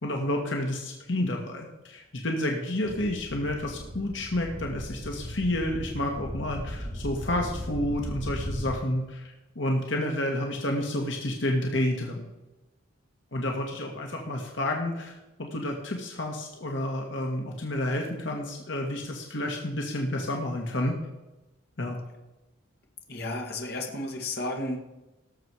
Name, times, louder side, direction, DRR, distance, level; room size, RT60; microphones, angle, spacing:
voice 1, 0.0-12.3 13.3-21.0 21.8-22.0, left 1 dB, 70° left, 1 dB, 1.7 m, -30 dB
sound 1, 2.8-8.7, equal, 30° right, 2.6 m, -37 dB
voice 2, 23.1-24.8, left 2 dB, 55° left, 1 dB, 2.0 m, -32 dB
18.0 x 7.2 x 4.8 m, 1.0 s
head